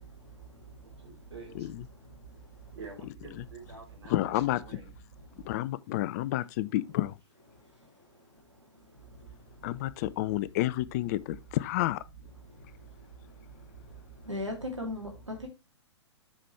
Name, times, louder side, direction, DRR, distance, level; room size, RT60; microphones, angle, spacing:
voice 1, 0.8-1.7 2.7-4.9, right 4 dB, 65° right, 4.2 m, -48 dB
voice 2, 1.5-1.9 3.4-3.5 4.1-4.6 5.4-7.2 9.6-12.0, left 15 dB, 35° left, 0.4 m, -30 dB
voice 3, 14.3-15.5, left 1 dB, 90° right, 2.9 m, -36 dB
7.4 x 5.9 x 3.2 m
figure-of-eight pair, 115°, 15 cm